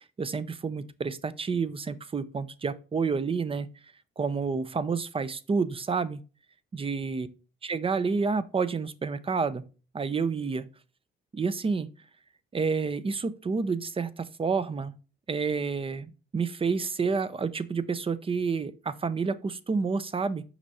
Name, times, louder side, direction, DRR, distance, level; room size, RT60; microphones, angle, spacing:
voice 1, 0.2-3.7 4.2-6.2 6.8-7.3 7.6-9.6 9.9-10.7 11.3-11.9 12.5-14.9 15.3-20.4, right 5 dB, 25° right, 0.6 m, -29 dB
5.9 x 5.4 x 4.1 m
cardioid pair, 90°, 20 cm